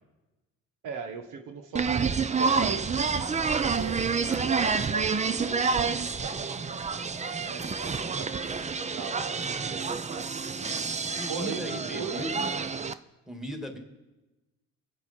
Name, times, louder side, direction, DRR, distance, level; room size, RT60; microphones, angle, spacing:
voice 1, 0.8-3.0 3.5-6.8 7.4-10.7 11.3-12.5, right 5 dB, 85° right, 6 dB, 1.5 m, -40 dB
sound 1, 1.8-12.9, right 5 dB, 25° right, 0.6 m, -28 dB
voice 2, 7.6-8.0 11.1-12.6 13.3-13.8, equal, ahead, 3 dB, 2.3 m, -38 dB
23.0 x 8.2 x 4.4 m, 1.1 s
cardioid pair, 90°, 30 cm